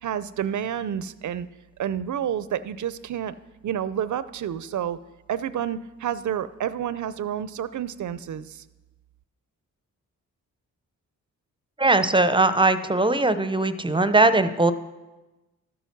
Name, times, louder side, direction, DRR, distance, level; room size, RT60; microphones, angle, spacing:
voice 1, 0.0-1.5 1.8-3.3 3.6-5.0 5.3-8.6, right 9 dB, 60° right, 15 dB, 0.6 m, -29 dB
voice 2, 11.8-14.7, right 2 dB, 15° right, 12 dB, 0.7 m, -20 dB
12.5 x 7.1 x 6.0 m, 1.1 s
cardioid pair, 55°, 34 cm